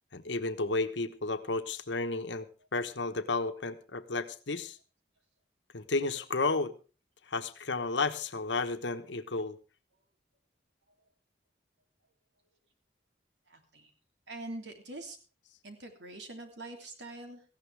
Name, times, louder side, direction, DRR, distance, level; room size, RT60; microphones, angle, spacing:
voice 1, 0.1-4.8 5.7-6.7 7.3-9.6, left 3 dB, 85° left, 9 dB, 1.2 m, -32 dB
voice 2, 13.5-13.9 14.3-15.2 15.6-17.4, right 2 dB, 75° right, 5 dB, 3.1 m, -44 dB
18.0 x 15.0 x 3.5 m, 0.35 s
head